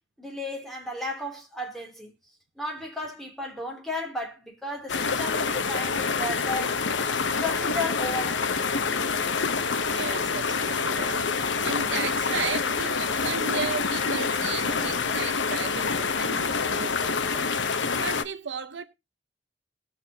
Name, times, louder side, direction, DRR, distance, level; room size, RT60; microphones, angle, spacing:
voice 1, 0.2-2.1 2.6-6.8 7.4-8.8, left 1 dB, ahead, 2.9 m, -34 dB
sound 1, 4.9-18.2, left 5 dB, 80° left, 0.8 m, -27 dB
voice 2, 9.9-18.8, right 6 dB, 70° right, 0.8 m, -35 dB
19.0 x 6.9 x 2.8 m
head